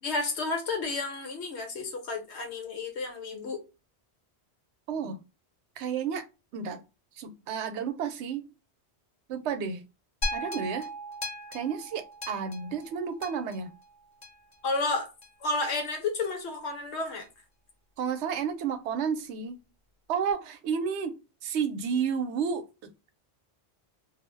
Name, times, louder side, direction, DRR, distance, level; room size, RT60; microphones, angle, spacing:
voice 1, 0.0-3.6 14.6-15.1 15.4-17.3, left 3 dB, 80° left, 1.1 m, -31 dB
voice 2, 4.9-5.2 5.8-6.3 6.5-6.8 7.2-8.5 9.3-9.8 10.3-10.9 11.5-13.7 18.0-19.6 20.1-22.6, right 6 dB, 85° right, 0.9 m, -31 dB
sound 1, 10.2-14.5 15.2-15.3, left 1 dB, 45° left, 0.8 m, -37 dB
2.4 x 2.1 x 3.1 m
omnidirectional pair, 1.1 m